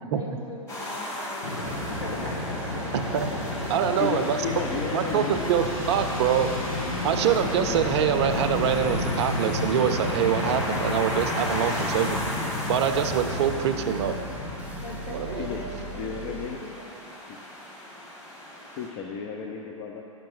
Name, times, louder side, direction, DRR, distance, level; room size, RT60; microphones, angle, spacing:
voice 1, 0.1-2.4 2.9-3.0 14.8-16.9, left 1 dB, 55° left, -3 dB, 2.3 m, -40 dB
sound 1, 0.7-18.9, left 1 dB, 15° left, 2.3 m, -36 dB
Fixed-wing aircraft airplane, 1.4-16.6, left 2 dB, 85° left, 1.5 m, -32 dB
sound 2, 1.7-16.5, right 1 dB, 10° right, 0.9 m, -42 dB
voice 2, 2.9-3.3 3.7-4.4 4.9-6.5 7.0-12.2 12.7-14.1 15.1-15.5, right 8 dB, 50° right, 8 dB, 0.6 m, -25 dB
voice 3, 4.0-5.4 15.4-16.6 17.3-17.4 18.8-20.0, left 6 dB, 40° left, 1 dB, 0.7 m, -33 dB
10.5 x 6.2 x 4.8 m, 2.7 s
hypercardioid pair, 110°, 18 cm